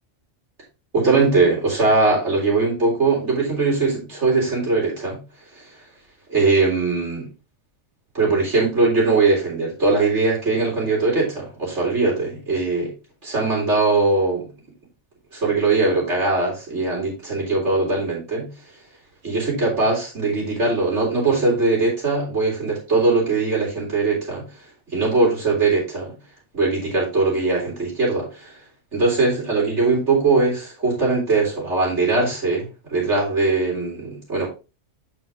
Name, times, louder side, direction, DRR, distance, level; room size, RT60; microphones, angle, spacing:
voice 1, 0.9-5.2 5.6-5.7 6.3-7.3 8.1-12.9 13.2-14.5 15.3-18.5 19.2-24.4 24.9-26.1 26.5-28.5 28.9-34.5, right 3 dB, 75° right, -3 dB, 4.1 m, -20 dB
7.4 x 6.2 x 3.7 m, 0.30 s
omnidirectional pair, 1.2 m